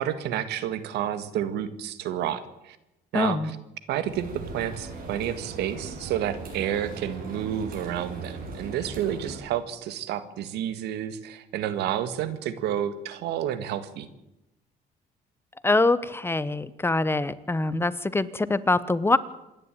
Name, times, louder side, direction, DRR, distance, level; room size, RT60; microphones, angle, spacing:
voice 1, 0.0-2.8 3.1-3.6 3.9-4.3 4.5-14.1, right 10 dB, 80° right, 13 dB, 1.8 m, -30 dB
voice 2, 3.1-3.5 15.6-19.2, left 2 dB, 15° left, 16 dB, 1.0 m, -24 dB
sound 1, 4.0-9.4, right 3 dB, 60° right, 6.8 m, -39 dB
26.5 x 11.0 x 9.2 m, 0.92 s
cardioid pair, 110°, 17 cm